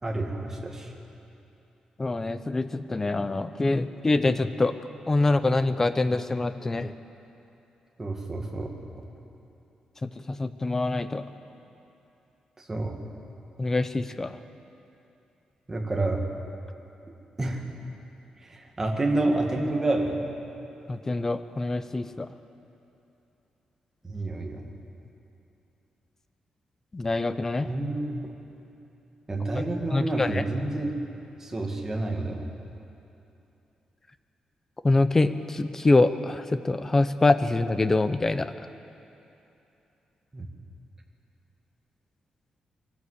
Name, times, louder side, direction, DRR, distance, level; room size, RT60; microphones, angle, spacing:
voice 1, 0.0-0.9 8.0-8.7 9.0-9.1 12.6-13.0 15.7-16.2 17.4-17.8 18.4-20.3 24.0-24.7 27.6-28.2 29.3-31.0 31.4-32.5 40.3-40.5, right 2 dB, 20° right, 1 dB, 2.1 m, -29 dB
voice 2, 2.0-4.8 5.1-6.9 10.0-11.2 13.6-14.4 20.9-22.3 26.9-27.7 29.9-30.4 34.8-38.7, left 2 dB, 20° left, 11 dB, 0.7 m, -25 dB
23.0 x 13.5 x 8.2 m, 2.9 s
wide cardioid pair, 160°, 2 cm